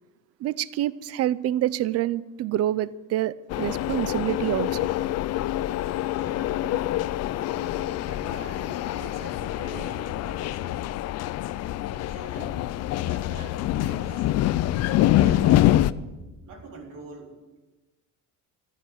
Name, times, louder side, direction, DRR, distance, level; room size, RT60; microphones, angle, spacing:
voice 1, 0.4-4.7, right 13 dB, 45° right, 0.5 m, -27 dB
sound 1, 3.5-15.9, left 14 dB, 50° left, 0.5 m, -25 dB
voice 2, 5.7-6.7 7.5-11.0 11.9-14.4 15.0-15.8 16.4-17.4, right 2 dB, 70° right, 4.1 m, -44 dB
15.0 x 12.0 x 7.5 m
cardioid pair, 170°, 33 cm